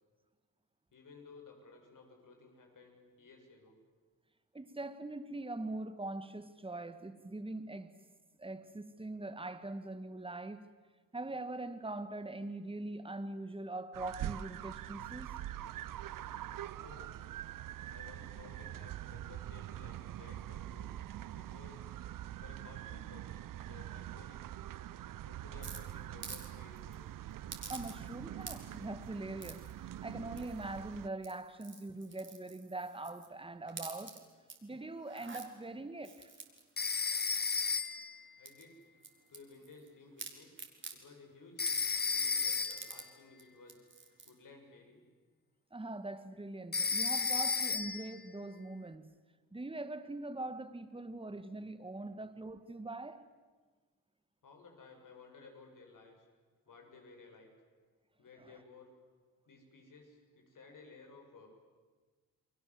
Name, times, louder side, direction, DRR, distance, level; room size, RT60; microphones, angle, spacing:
voice 1, 0.9-3.8 16.8-17.1 17.9-20.9 21.3-22.0 22.4-24.4 25.2-27.1 38.4-38.8 39.3-40.5 40.9-41.8 42.1-43.9 44.3-45.0 54.4-56.3 56.7-57.5 58.2-58.9 59.5-61.5, left 4 dB, 60° left, 7.3 m, -56 dB
voice 2, 4.5-7.9 8.4-10.7 11.1-15.4 27.7-34.2 34.6-36.3 45.7-49.1 49.5-53.3 58.4-58.5, right 2 dB, 15° right, 2.0 m, -42 dB
sound 1, 13.9-31.1, right 12 dB, 65° right, 0.7 m, -44 dB
sound 2, 25.6-26.5 26.8-26.9 27.5-28.1 28.4-28.8 29.4-29.7 30.4-30.8 31.1-33.3 33.7-34.6 35.0-35.5 36.0-38.0 38.4-39.9 40.2-41.0 41.6-43.1 43.4-43.5 43.7-44.3, right 4 dB, 35° right, 4.5 m, -49 dB
Telephone, 36.8-38.2 41.6-43.0 46.7-48.1, left 5 dB, 25° left, 1.1 m, -33 dB
29.5 x 21.5 x 7.9 m
cardioid pair, 65°, 35 cm